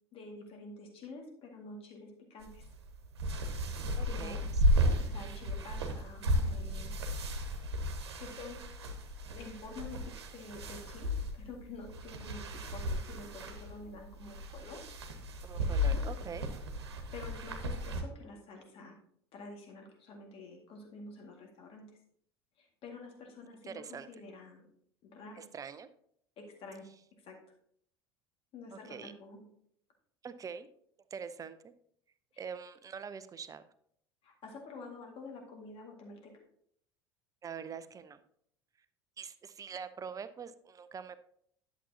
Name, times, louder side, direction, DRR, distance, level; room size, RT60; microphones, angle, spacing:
voice 1, 0.1-2.6 4.1-4.5 5.0-7.0 8.2-8.6 9.3-14.8 15.6-16.1 17.1-19.0 19.3-21.9 22.6-24.7 25.0-25.4 26.4-26.9 27.2-27.4 28.5-29.5 32.3-32.4 34.2-36.4, left 3 dB, 45° left, 2 dB, 2.0 m, -48 dB
sound 1, 2.4-18.0, equal, 70° right, 1.2 m, -34 dB
voice 2, 4.0-4.4 15.4-16.5 23.6-24.1 25.4-25.9 28.7-29.1 30.2-30.7 31.1-31.7 32.4-33.6 37.4-38.2 39.2-41.2, right 6 dB, 25° right, 12 dB, 0.6 m, -44 dB
11.0 x 7.0 x 2.8 m, 0.68 s
figure-of-eight pair, 70°, 14 cm